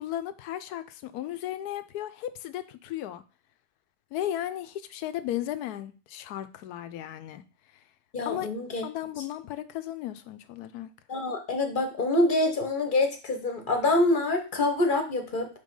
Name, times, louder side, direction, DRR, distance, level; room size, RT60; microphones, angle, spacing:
voice 1, 0.0-3.2 4.1-7.4 8.2-8.5 8.8-10.9, left 12 dB, 90° left, 1.1 m, -35 dB
voice 2, 8.1-8.8 11.1-15.5, left 2 dB, 40° left, 0.9 m, -26 dB
5.4 x 3.3 x 5.2 m
omnidirectional pair, 1.6 m